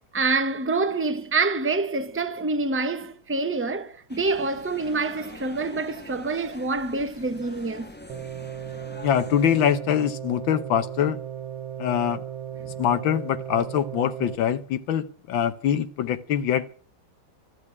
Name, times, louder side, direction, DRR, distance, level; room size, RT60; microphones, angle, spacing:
voice 1, 0.1-7.9 12.6-12.7, right 3 dB, 10° right, 0.6 m, -26 dB
sound 1, 4.1-9.7, left 1 dB, 5° left, 1.1 m, -45 dB
sound 2, 8.1-14.4, right 9 dB, 85° right, 1.8 m, -36 dB
voice 2, 9.0-11.2 11.8-12.2 12.8-16.7, left 9 dB, 85° left, 1.7 m, -24 dB
14.0 x 8.5 x 9.7 m
omnidirectional pair, 2.1 m